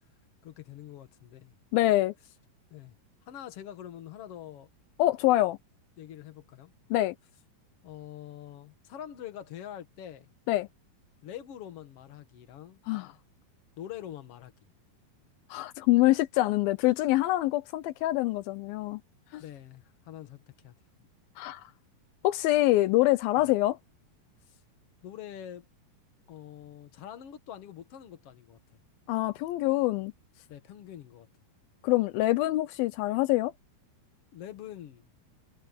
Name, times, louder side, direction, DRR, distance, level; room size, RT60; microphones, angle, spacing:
voice 1, 0.4-1.6 2.7-3.0 3.3-4.7 6.0-6.7 7.8-10.3 11.2-12.8 13.8-14.5 19.4-20.7 23.4-23.5 24.5-24.6 25.0-25.6 26.3-28.6 30.5-31.3 34.3-35.1, left 11 dB, 55° left, 1.7 m, -44 dB
voice 2, 1.7-2.1 5.0-5.6 6.9-7.2 10.5-10.7 12.9-13.1 15.5-19.0 19.3-19.4 21.4-21.6 22.2-23.8 29.1-30.1 31.8-33.5, left 17 dB, 80° left, 2.2 m, -25 dB
omnidirectional pair, 4.7 m